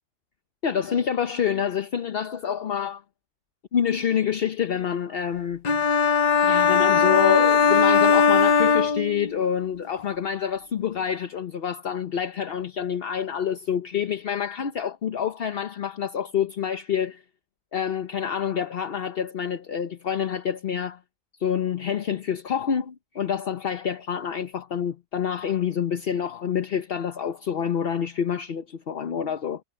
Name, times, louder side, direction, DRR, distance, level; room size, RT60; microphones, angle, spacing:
voice 1, 0.6-3.0 3.7-5.6 6.4-17.2 17.7-21.0 21.4-29.6, left 8 dB, 45° left, 0.8 m, -27 dB
sound 1, 5.6-9.5, left 6 dB, 70° left, 0.4 m, -19 dB
omnidirectional pair, 1.7 m